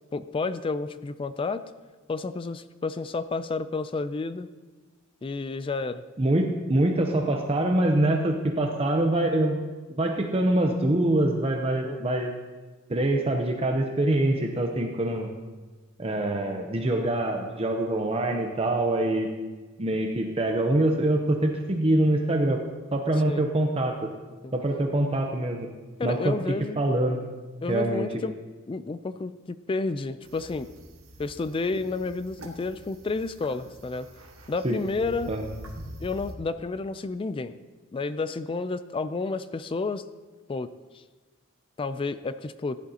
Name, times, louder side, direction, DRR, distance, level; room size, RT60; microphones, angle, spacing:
voice 1, 0.1-1.6 2.1-4.5 5.2-6.0 11.8-12.2 23.3-23.5 24.4-24.5 26.0-26.9 27.6-28.4 28.7-30.7 31.2-34.1 34.5-35.4 36.0-37.5 37.9-40.0 40.5-40.7 41.8-42.8, left 3 dB, 25° left, 13 dB, 0.3 m, -31 dB
voice 2, 6.2-9.6 10.0-12.3 12.9-15.3 16.0-19.3 19.8-22.6 22.9-24.1 24.5-25.7 26.0-26.3 26.8-27.2 27.7-28.2 34.6-34.8 35.3-35.4, right 1 dB, 30° right, 3 dB, 0.7 m, -24 dB
sound 1, 30.2-36.3, equal, 80° right, 1.4 m, -45 dB
15.0 x 10.5 x 2.8 m, 1.3 s
head